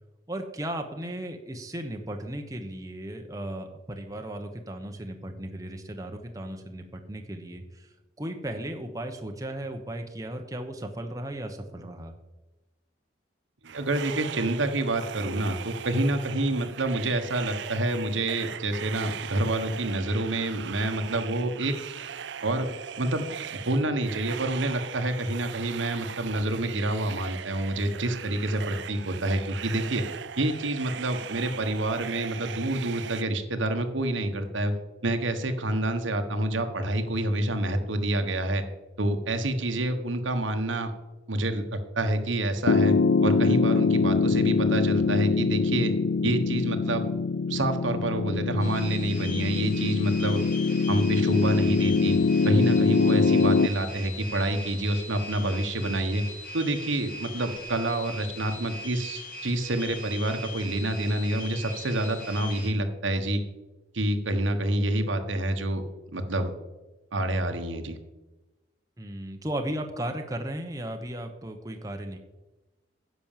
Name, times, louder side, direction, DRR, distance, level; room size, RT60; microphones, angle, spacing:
voice 1, 0.3-12.1 69.0-72.2, right 1 dB, 20° right, 4 dB, 0.9 m, -36 dB
sound 1, 13.6-33.2, right 8 dB, 70° right, 0.5 m, -39 dB
voice 2, 13.6-21.7 22.4-22.7 23.0-23.3 23.7-30.1 30.4-34.7 35.0-38.6 39.0-40.9 41.3-43.0 43.2-45.9 46.2-47.1 47.5-50.4 50.9-52.2 52.4-56.2 56.5-63.4 63.9-65.8 66.1-66.5 67.1-68.0, right 1 dB, 85° right, 7 dB, 1.3 m, -27 dB
Piano, 42.7-53.7, left 4 dB, 80° left, 0.4 m, -23 dB
sound 2, 48.6-62.7, left 1 dB, 45° left, 2.8 m, -41 dB
10.5 x 6.2 x 7.3 m, 1.1 s
head